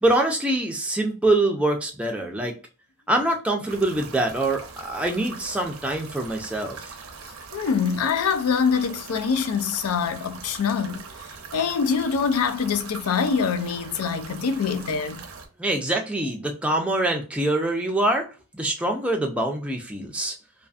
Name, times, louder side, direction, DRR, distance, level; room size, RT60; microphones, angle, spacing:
voice 1, 0.0-2.6 3.1-6.9 15.6-18.3 18.6-20.3, right 1 dB, 5° right, 0.3 m, -24 dB
sound 1, 3.7-15.5, right 5 dB, 80° right, 0.5 m, -41 dB
voice 2, 7.5-11.0 11.5-15.2, left 6 dB, 90° left, 0.4 m, -24 dB
2.5 x 2.4 x 2.3 m
head